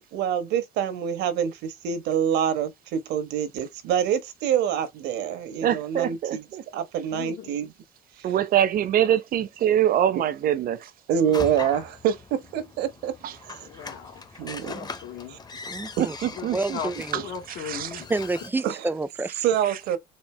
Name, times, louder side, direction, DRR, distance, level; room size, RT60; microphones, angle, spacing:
voice 1, 0.1-6.4 6.7-7.7 11.1-13.1 13.4-13.7 14.4-14.8 15.3-15.4 16.0-16.3 18.6-18.9 19.4-20.0, right 9 dB, 85° right, 1.1 m, -26 dB
voice 2, 5.6-6.6 8.2-10.8 13.2-13.3 16.0-16.8 17.1-18.0 19.6-19.8, right 11 dB, 60° right, 0.7 m, -24 dB
voice 3, 7.1-7.7 11.2-11.4 13.6-14.3 14.7-15.4 16.4-18.3, left 7 dB, 80° left, 1.9 m, -38 dB
sound 1, 11.3-18.5, left 4 dB, 25° left, 0.7 m, -40 dB
voice 4, 15.7-16.2 16.5-17.2 18.1-19.4, right 2 dB, 10° right, 0.3 m, -29 dB
4.3 x 2.5 x 3.2 m
cardioid pair, 110°, 17 cm